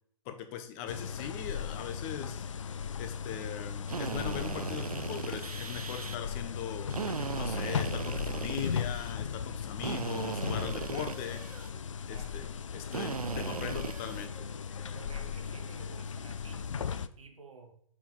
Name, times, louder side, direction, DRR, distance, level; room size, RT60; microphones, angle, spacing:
voice 1, 0.3-2.5 3.0-6.9 7.3-11.4 12.1-12.5 12.7-14.3, left 9 dB, 25° left, 0.7 m, -40 dB
sound 1, 0.9-17.1, left 7 dB, 60° left, 0.4 m, -37 dB
Drill, 3.9-6.2 6.9-9.1 9.8-11.7 12.9-14.3, right 5 dB, 80° right, 0.4 m, -37 dB
sound 2, 7.4-12.8 13.2-16.1 16.8-17.0, equal, 10° right, 0.9 m, -54 dB
voice 2, 10.9-11.2 12.0-12.4 13.2-14.2 14.9-17.7, right 4 dB, 60° right, 1.1 m, -52 dB
4.9 x 4.2 x 5.5 m
figure-of-eight pair, 125°, 19 cm